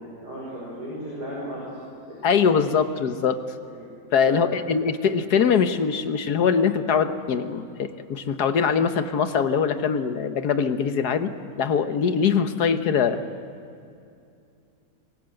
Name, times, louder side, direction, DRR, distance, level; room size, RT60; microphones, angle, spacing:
voice 1, 0.0-1.8 2.1-2.2 3.7-3.8 4.3-4.5, equal, 75° right, -5 dB, 6.3 m, -35 dB
voice 2, 2.2-3.4 4.1-13.2, left 6 dB, 75° left, 9 dB, 1.7 m, -22 dB
26.5 x 22.0 x 7.8 m, 2.5 s
omnidirectional pair, 1.7 m